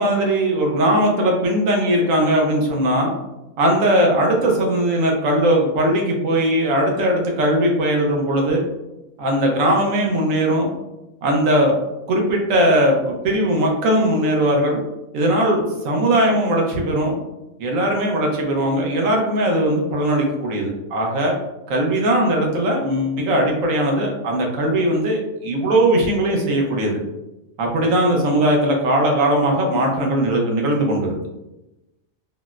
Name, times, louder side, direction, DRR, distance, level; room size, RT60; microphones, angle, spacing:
voice 1, 0.0-3.1 3.6-8.6 9.2-10.7 11.2-11.7 12.1-14.8 15.1-17.2 17.6-21.3 21.7-27.0 27.6-31.1, right 1 dB, 75° right, 0 dB, 1.1 m, -19 dB
4.0 x 2.0 x 2.4 m, 0.98 s
omnidirectional pair, 1.4 m